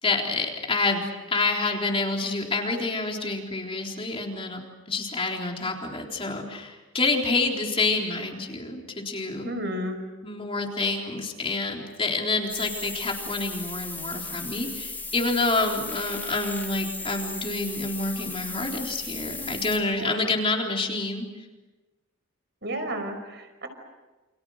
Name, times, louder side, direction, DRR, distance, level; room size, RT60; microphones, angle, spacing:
voice 1, 0.0-4.6 4.9-9.5 10.2-21.3, left 3 dB, 25° left, 1 dB, 3.8 m, -28 dB
voice 2, 9.4-10.0 20.0-20.3 22.6-23.7, equal, 55° right, 7 dB, 5.3 m, -32 dB
sound 1, 12.5-19.8, left 3 dB, 10° left, 3.8 m, -36 dB
29.5 x 28.5 x 6.5 m, 1.2 s
head